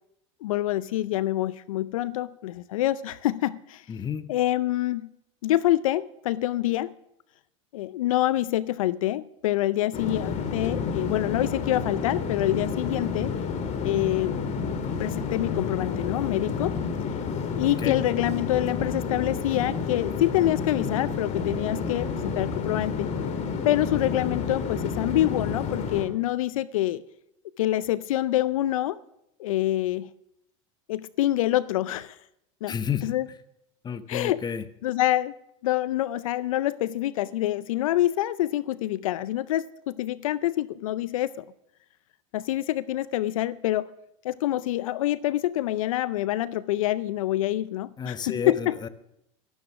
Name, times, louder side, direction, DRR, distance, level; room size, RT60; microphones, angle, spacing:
voice 1, 0.4-3.8 4.3-5.1 5.4-6.9 7.7-13.3 13.8-14.3 15.0-16.8 17.6-23.1 23.6-27.0 27.6-29.0 29.4-30.1 30.9-32.2 32.6-32.7 33.0-33.2 34.1-34.4 34.8-35.3 35.6-41.5 42.3-43.9 44.2-48.7, left 14 dB, 80° left, 18 dB, 0.5 m, -26 dB
voice 2, 3.9-4.3 17.8-18.0 32.7-33.1 33.8-34.6 48.0-48.9, left 7 dB, 25° left, 12 dB, 1.0 m, -31 dB
sound 1, 9.9-26.1, left 5 dB, 40° left, 2.0 m, -30 dB
13.0 x 12.0 x 6.1 m, 0.80 s
hypercardioid pair, 95°, 17 cm